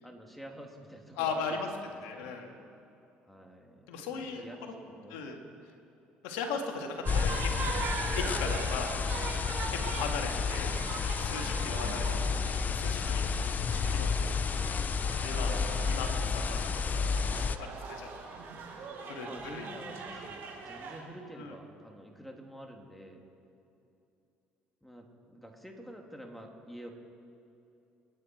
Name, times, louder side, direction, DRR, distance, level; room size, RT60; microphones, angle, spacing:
voice 1, 0.0-2.4 3.3-5.6 19.2-23.2 24.8-26.9, equal, ahead, 1 dB, 2.9 m, -48 dB
voice 2, 1.2-1.7 2.0-2.5 3.9-4.7 5.1-5.4 6.2-7.9 8.2-8.9 9.7-10.7 11.2-12.0 12.3-14.3 15.2-15.5 15.8-16.9 17.6-18.1 19.0-19.7 21.4-21.5, left 5 dB, 80° left, 3 dB, 2.2 m, -38 dB
sound 1, 7.0-21.0, right 4 dB, 60° right, 4.1 m, -41 dB
sound 2, 7.1-17.6, left 5 dB, 40° left, 0.8 m, -31 dB
29.0 x 10.0 x 4.6 m, 2.7 s
hypercardioid pair, 65°, 4 cm